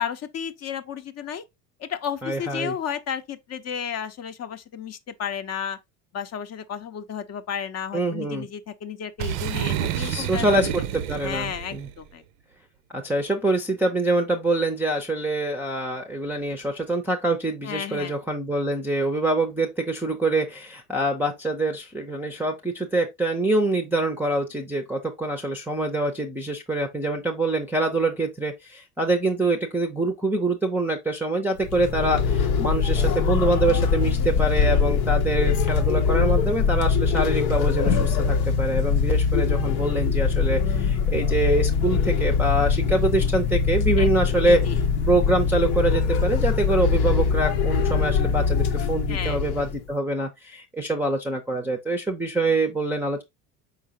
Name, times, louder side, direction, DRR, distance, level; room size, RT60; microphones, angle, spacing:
voice 1, 0.0-1.4 1.8-5.8 6.1-10.7 11.2-12.2 17.6-18.2 44.0-44.8 49.1-49.4, left 8 dB, 35° left, 0.7 m, -33 dB
voice 2, 2.2-2.8 7.9-8.5 10.0-11.9 12.9-44.6 45.1-53.2, right 2 dB, 5° right, 0.6 m, -25 dB
Boom, 9.2-11.9, right 10 dB, 60° right, 0.6 m, -29 dB
sound 1, 31.6-49.8, left 5 dB, 70° left, 0.8 m, -22 dB
4.9 x 3.9 x 2.7 m
hypercardioid pair, 65°, 46 cm